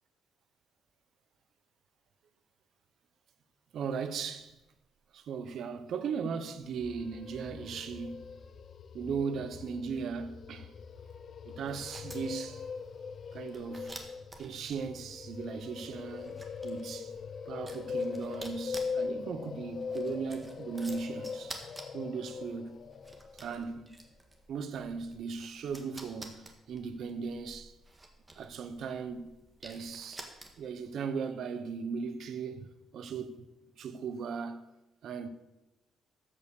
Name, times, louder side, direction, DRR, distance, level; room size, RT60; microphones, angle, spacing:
voice 1, 3.7-4.5 5.1-8.3 8.9-10.7 11.4-12.6 13.3-14.0 14.4-16.4 16.6-17.1 17.5-21.6 21.9-22.8 23.3-23.9 24.5-27.7 28.4-29.4 29.6-30.3 30.6-32.7 32.9-33.4 33.8-34.7 35.0-35.3, right 5 dB, 70° right, 0.9 m, -37 dB
sound 1, 6.6-23.6, left 5 dB, 55° left, 0.7 m, -41 dB
sound 2, 11.6-30.8, right 2 dB, 20° right, 1.8 m, -51 dB
14.0 x 5.5 x 6.6 m
cardioid pair, 90°, 0 cm